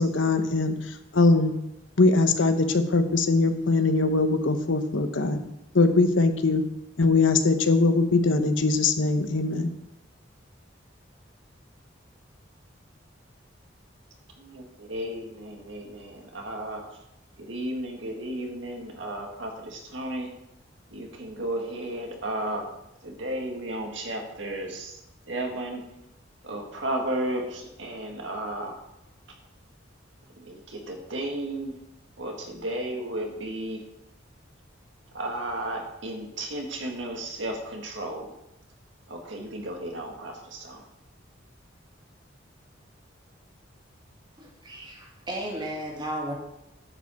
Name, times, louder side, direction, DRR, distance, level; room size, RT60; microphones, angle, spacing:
voice 1, 0.0-1.5 2.0-5.4 5.7-6.6 7.0-9.7, left 3 dB, 85° left, 1.0 m, -22 dB
voice 2, 14.4-16.8 17.5-20.3 20.9-22.7 23.0-25.0 25.3-25.8 26.4-28.7 30.4-31.8 32.2-33.8 35.1-38.3 39.1-40.8, right 1 dB, 75° right, 1.9 m, -33 dB
voice 3, 44.4-46.3, right 1 dB, 25° right, 2.2 m, -34 dB
9.8 x 5.3 x 7.1 m
head